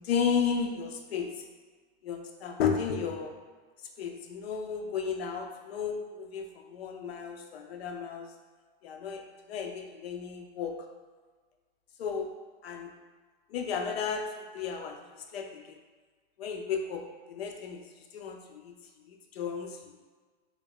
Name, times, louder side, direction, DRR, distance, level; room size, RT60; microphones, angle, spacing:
voice 1, 0.0-1.3 2.0-3.3 4.0-8.3 8.8-9.2 9.5-10.7 12.0-12.3 12.6-12.9 13.5-15.0 15.3-15.6 16.4-17.0 17.3-17.8 18.1-18.7 19.1-20.0, left 6 dB, 80° left, 4 dB, 0.6 m, -33 dB
3.6 x 2.1 x 3.4 m, 1.4 s
supercardioid pair, 170°, 31 cm